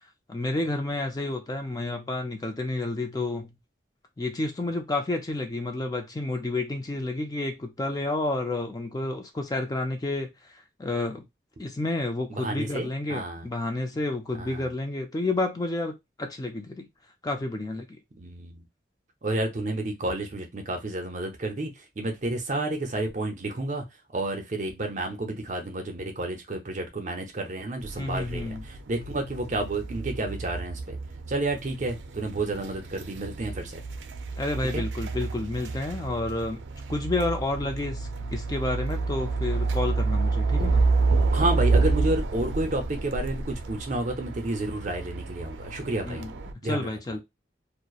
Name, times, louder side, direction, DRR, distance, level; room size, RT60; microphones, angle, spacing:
voice 1, 0.3-3.5 4.2-11.2 11.6-15.9 16.2-16.9 17.2-18.0 28.0-28.6 34.4-36.6 36.9-40.8 46.1-47.2, left 2 dB, 20° left, 0.4 m, -30 dB
voice 2, 12.3-13.5 14.4-14.7 18.2-18.6 19.2-21.7 22.0-23.8 24.1-31.0 31.3-33.8 34.7-34.8 41.3-46.3 46.6-47.2, right 2 dB, 45° right, 0.6 m, -30 dB
sound 1, 27.8-46.5, right 3 dB, 90° right, 0.4 m, -29 dB
2.8 x 2.0 x 2.3 m
head